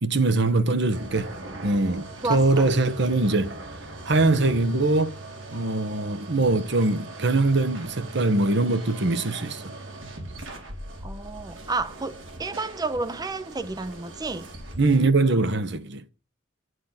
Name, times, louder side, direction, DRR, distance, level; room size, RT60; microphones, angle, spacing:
voice 1, 0.0-1.3 1.6-3.6 4.0-5.1 5.5-9.7 14.8-16.0, right 2 dB, 65° right, 1.2 m, -22 dB
sound 1, 0.9-15.1, right 2 dB, 85° right, 3.7 m, -40 dB
voice 2, 2.2-2.7 11.0-14.5, right 3 dB, 20° right, 0.6 m, -31 dB
9.5 x 9.5 x 5.8 m
head